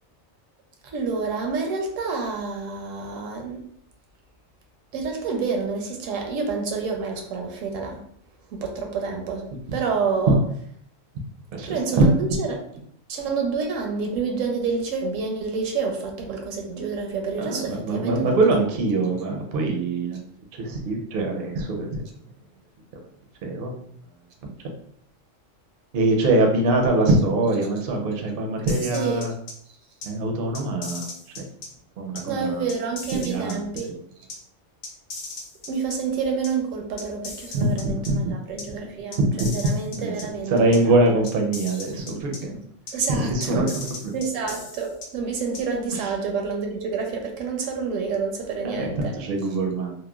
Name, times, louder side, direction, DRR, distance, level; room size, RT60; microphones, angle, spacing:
voice 1, 0.8-3.6 4.9-8.0 8.5-10.4 11.6-12.6 13.1-18.4 28.9-29.3 32.3-33.9 35.7-41.0 42.9-43.7 44.1-49.1, right 5 dB, 80° right, 2 dB, 0.9 m, -28 dB
voice 2, 11.5-12.1 17.4-20.2 20.6-21.9 23.4-23.7 24.4-24.5 25.9-29.3 30.0-31.1 32.0-32.6 33.1-33.6 37.5-38.2 39.2-39.5 40.0-42.6 43.1-43.7 48.6-49.9, right 2 dB, 60° right, 2 dB, 0.6 m, -23 dB
sound 1, 28.7-29.5 30.0-30.1 30.5-31.7 32.1-32.2 32.7-33.8 34.3-34.4 34.8-36.0 36.4-36.5 37.0-38.1 38.6-38.7 39.1-40.2 40.7-40.8 41.3-42.4 42.9-43.0 43.4-45.1 45.5-45.6, left 3 dB, 85° left, 1.0 m, -37 dB
3.0 x 2.1 x 2.2 m, 0.64 s
omnidirectional pair, 1.3 m